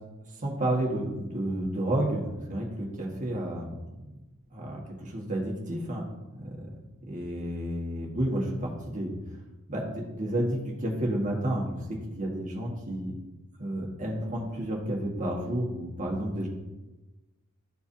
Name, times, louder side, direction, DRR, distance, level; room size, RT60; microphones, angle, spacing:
voice 1, 0.4-4.1 4.5-6.0 6.4-6.7 7.1-9.1 9.7-13.1 13.6-16.5, right 1 dB, 35° right, -1 dB, 1.6 m, -31 dB
13.0 x 4.6 x 2.7 m, 1.1 s
head